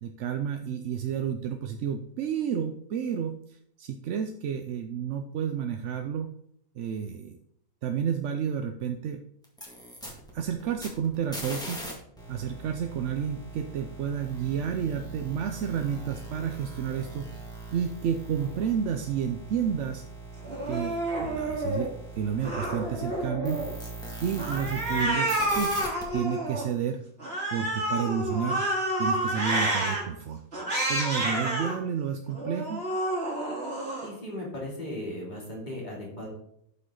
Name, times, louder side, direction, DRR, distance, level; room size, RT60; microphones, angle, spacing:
voice 1, 0.0-6.3 6.8-7.4 7.8-9.2 10.3-11.8 12.3-17.3 17.7-20.0 20.7-21.9 22.2-23.6 24.2-25.7 26.1-27.0 27.5-28.6 29.0-30.4 30.9-32.8, right 8 dB, 65° right, 6 dB, 0.8 m, -31 dB
sound 1, 9.4-11.9 12.2-25.0 25.3-26.0, right 2 dB, 5° left, 1.9 m, -41 dB
Cat, 20.4-21.9 22.4-23.7 24.4-26.6 27.2-30.0 30.5-31.8 32.3-34.1, right 1 dB, 45° right, 2.4 m, -29 dB
voice 2, 34.0-36.3, left 1 dB, 30° left, -4 dB, 2.9 m, -37 dB
11.5 x 5.7 x 3.9 m, 0.71 s
omnidirectional pair, 1.6 m